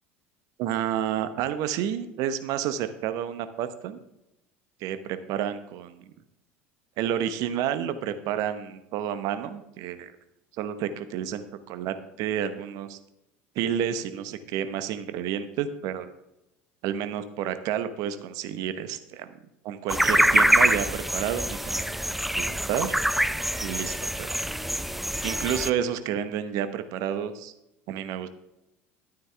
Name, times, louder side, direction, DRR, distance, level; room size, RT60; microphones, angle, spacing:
voice 1, 0.6-4.0 4.8-6.0 7.0-10.1 10.6-13.0 13.5-16.1 16.8-19.3 19.6-22.9 23.6-24.4 25.2-27.5 27.9-28.3, right 9 dB, 60° right, 11 dB, 1.0 m, -30 dB
sound 1, 19.9-25.7, right 1 dB, ahead, 0.5 m, -25 dB
12.0 x 9.2 x 3.4 m, 0.88 s
hypercardioid pair, 70°, 7 cm